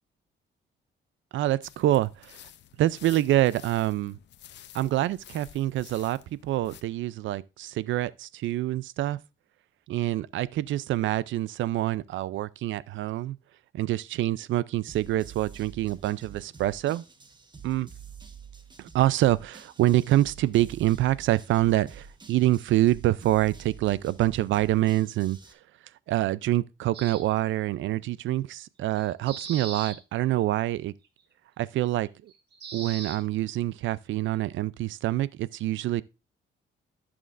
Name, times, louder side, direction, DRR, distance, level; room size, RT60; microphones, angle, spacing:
voice 1, 1.3-2.4 2.8-4.2 4.7-6.2 6.4-9.2 9.9-13.4 13.7-17.0 17.6-17.9 18.8-25.4 26.1-30.9 31.6-32.1 32.7-36.0, right 14 dB, 75° right, 0.5 m, -26 dB
sound 1, 1.6-6.8, left 11 dB, 65° left, 0.6 m, -51 dB
sound 2, 14.9-25.5, right 6 dB, 20° right, 1.2 m, -47 dB
sound 3, 26.9-27.2 29.0-30.0 30.4-30.5 32.3-33.2, right 6 dB, 60° right, 1.6 m, -38 dB
14.5 x 6.2 x 2.5 m
cardioid pair, 90°, 20 cm